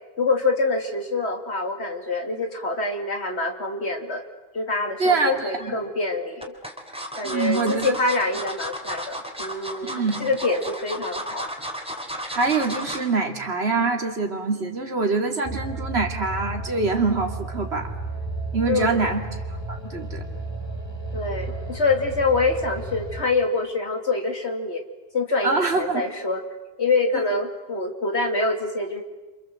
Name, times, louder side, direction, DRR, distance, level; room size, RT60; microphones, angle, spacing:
voice 1, 0.2-4.2 4.5-6.5 7.1-11.5 18.7-19.0 21.1-24.8 25.1-26.4 26.8-29.0, left 3 dB, 55° left, 4 dB, 3.1 m, -25 dB
voice 2, 5.0-5.7 7.2-7.9 9.8-10.3 12.3-17.9 18.5-19.2 19.5-20.2 25.4-26.1 27.1-27.3, right 4 dB, 55° right, 3 dB, 2.8 m, -25 dB
sound 1, 5.4-5.7 6.4-13.1 13.5-13.7 14.0-14.1, equal, 5° right, 3.5 m, -34 dB
sound 2, 15.4-23.2, right 2 dB, 20° left, 1.9 m, -33 dB
29.0 x 26.0 x 7.8 m, 1.2 s
omnidirectional pair, 1.3 m